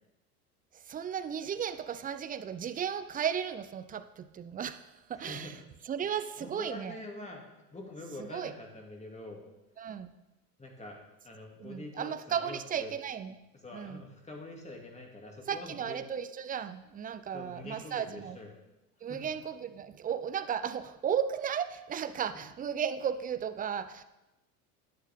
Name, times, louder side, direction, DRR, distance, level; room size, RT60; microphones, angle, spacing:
voice 1, 0.9-5.5 5.9-7.0 8.2-8.5 9.8-10.1 11.6-13.3 13.7-14.0 15.5-18.4 19.0-24.0, right 8 dB, 20° right, 13 dB, 0.5 m, -35 dB
voice 2, 5.1-5.6 6.4-7.4 7.7-9.4 10.6-11.0 11.2-12.9 13.6-16.0 17.3-18.6 19.1-19.3 22.3-22.4, left 2 dB, 15° left, 1 dB, 2.4 m, -45 dB
11.0 x 9.7 x 3.6 m, 1.0 s
hypercardioid pair, 80°, 45 cm